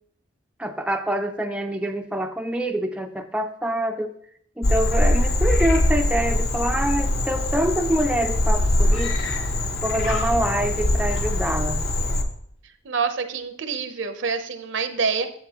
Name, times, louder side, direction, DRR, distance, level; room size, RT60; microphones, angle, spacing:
voice 1, 0.6-4.1 4.6-9.2 9.8-11.8, right 1 dB, 5° right, 4 dB, 0.4 m, -25 dB
Frog, 4.6-12.2, left 1 dB, 55° left, 0.9 m, -22 dB
Screaming, 8.9-9.7 10.0-10.8 11.1-12.0, left 3 dB, 90° left, 1.2 m, -37 dB
voice 2, 12.8-15.3, right 5 dB, 70° right, 9 dB, 0.7 m, -26 dB
8.5 x 7.5 x 2.9 m, 0.65 s
head